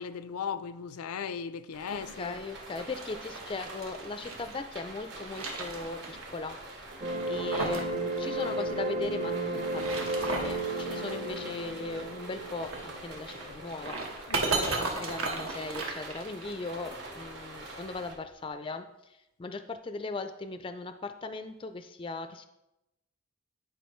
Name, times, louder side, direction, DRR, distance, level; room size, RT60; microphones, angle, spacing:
voice 1, 0.0-2.4 14.3-14.7, left 7 dB, 90° left, 0.4 m, -37 dB
sound 1, 1.7-18.1, right 2 dB, 50° right, 1.3 m, -45 dB
voice 2, 1.9-6.6 7.3-12.7 13.0-14.2 14.5-18.9 19.4-22.5, left 3 dB, 25° left, 0.3 m, -38 dB
sound 2, 2.7-4.6 5.0-6.3 6.5-6.6 7.1-7.9 8.2-8.3 9.6-10.6 12.6-16.6, right 3 dB, 75° right, 1.3 m, -35 dB
sound 3, 7.0-14.0, right 2 dB, 30° right, 0.8 m, -34 dB
10.0 x 5.0 x 3.1 m
head